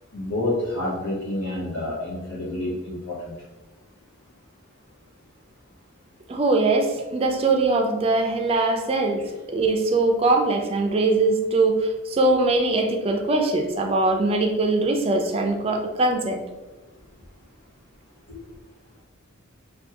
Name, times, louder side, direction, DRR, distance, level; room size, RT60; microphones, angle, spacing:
voice 1, 0.1-3.3, left 1 dB, 90° left, -6 dB, 0.8 m, -28 dB
voice 2, 6.3-16.4, right 2 dB, 25° right, 3 dB, 0.3 m, -22 dB
3.3 x 2.2 x 2.7 m, 1.1 s
head